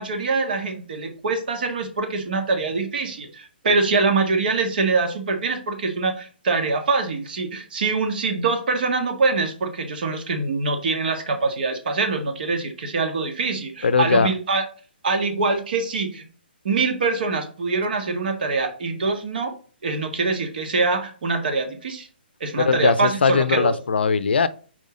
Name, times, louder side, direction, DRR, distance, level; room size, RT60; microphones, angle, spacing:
voice 1, 0.0-14.6 15.0-16.2 16.6-19.5 19.8-22.1 22.4-23.7, right 3 dB, 60° right, 1.7 m, -24 dB
voice 2, 13.8-14.3 22.6-24.5, left 5 dB, 75° left, 0.6 m, -20 dB
5.5 x 4.6 x 3.8 m
hypercardioid pair, 145°, 6 cm